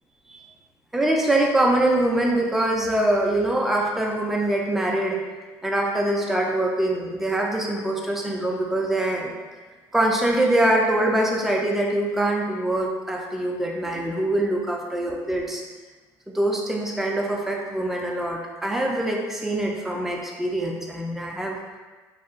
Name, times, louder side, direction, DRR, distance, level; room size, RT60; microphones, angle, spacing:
voice 1, 0.9-5.2 5.6-9.3 9.9-15.6 16.3-21.6, right 1 dB, 5° right, -1 dB, 0.3 m, -24 dB
2.4 x 2.2 x 3.7 m, 1.3 s
cardioid pair, 155°, 8 cm